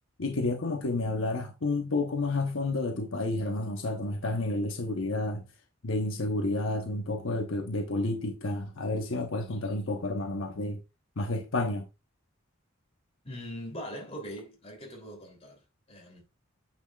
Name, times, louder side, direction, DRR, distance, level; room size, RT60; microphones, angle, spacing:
voice 1, 0.2-5.4 5.8-10.8 11.2-11.9, left 2 dB, 70° left, 1.0 m, -30 dB
voice 2, 13.2-16.2, equal, 30° left, 3.0 m, -42 dB
9.1 x 6.2 x 2.3 m
head